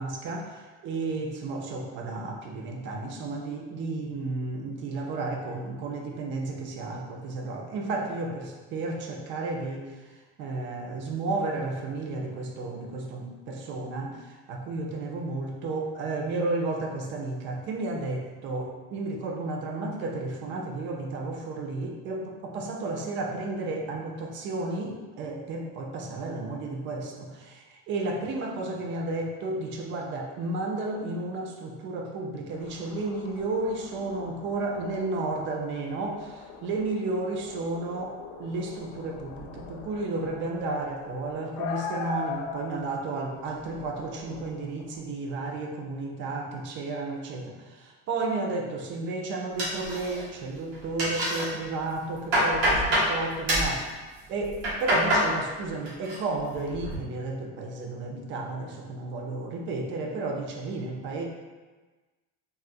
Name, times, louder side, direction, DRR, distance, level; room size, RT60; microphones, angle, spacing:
voice 1, 0.0-53.9 54.3-61.2, right 2 dB, 35° right, 2 dB, 0.4 m, -32 dB
sound 1, 32.5-45.0, left 6 dB, 60° left, 0.5 m, -42 dB
sound 2, 49.6-50.4 50.7-51.5 51.9-53.1 53.5-53.8 54.4-55.3 55.6-56.2 56.5-57.0, equal, 85° right, 1.3 m, -25 dB
3.6 x 2.1 x 2.6 m, 1.3 s
supercardioid pair, 140°, 34 cm